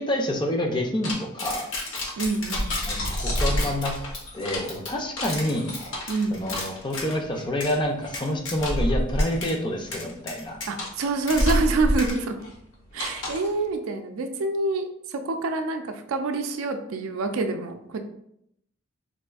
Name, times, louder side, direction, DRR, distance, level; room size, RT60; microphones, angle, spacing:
voice 1, 0.0-1.7 2.9-3.0 3.2-3.9 4.3-5.8 6.3-10.6, left 1 dB, 20° left, 2 dB, 0.4 m, -27 dB
sound 1, 1.0-7.2 7.6-7.8 8.1-8.9 9.2-9.5 9.9-11.7 12.0-12.1 13.0-13.5, left 2 dB, 60° left, 0.8 m, -33 dB
voice 2, 2.2-2.7 6.1-6.4 10.7-12.4 12.9-18.1, right 3 dB, 85° right, 6 dB, 0.4 m, -27 dB
sound 2, 2.4-13.6, equal, 90° left, 1.1 m, -29 dB
4.1 x 2.5 x 2.3 m, 0.75 s
head